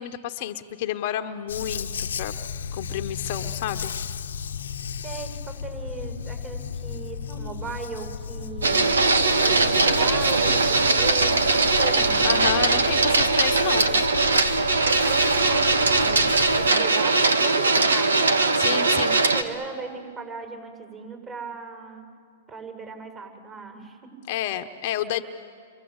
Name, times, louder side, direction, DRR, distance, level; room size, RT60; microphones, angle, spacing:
voice 1, 0.0-2.3 2.7-3.9 12.2-14.1 18.5-19.2 24.3-25.2, left 11 dB, 50° left, 7 dB, 1.0 m, -30 dB
Dog, 1.5-16.7, left 6 dB, 80° left, 1.0 m, -34 dB
voice 2, 5.0-8.9 9.4-12.3 15.0-18.3 18.7-22.0 22.5-24.2, right 4 dB, 30° right, 4 dB, 7.6 m, -38 dB
Printer, 8.6-19.4, right 3 dB, 90° right, 1.6 m, -20 dB
30.0 x 24.0 x 8.1 m, 2.2 s
hypercardioid pair, 125°, 0 cm